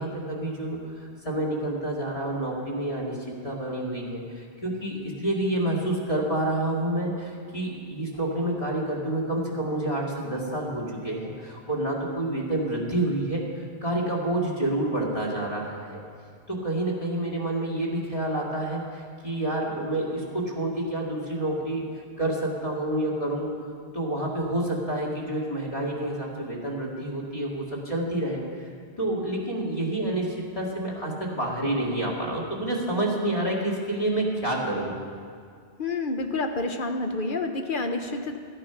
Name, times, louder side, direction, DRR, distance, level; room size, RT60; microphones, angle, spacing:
voice 1, 0.0-3.2 3.4-16.0 16.5-21.8 22.2-23.5 23.9-28.7 29.0-34.9, right 1 dB, 30° left, -4 dB, 2.2 m, -28 dB
voice 2, 35.8-38.4, left 3 dB, 55° left, 5 dB, 0.9 m, -28 dB
13.5 x 8.9 x 5.7 m, 2.1 s
omnidirectional pair, 1.1 m